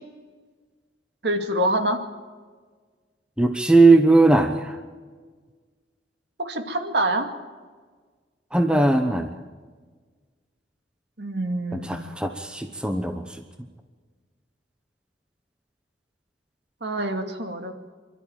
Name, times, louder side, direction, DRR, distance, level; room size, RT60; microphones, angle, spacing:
voice 1, 1.2-2.0 6.4-7.3 11.2-12.1 16.8-17.7, right 1 dB, 60° right, 5 dB, 2.3 m, -26 dB
voice 2, 3.4-4.8 8.5-9.3 11.7-13.4, right 2 dB, 5° right, 6 dB, 1.0 m, -19 dB
26.5 x 12.5 x 8.9 m, 1.5 s
head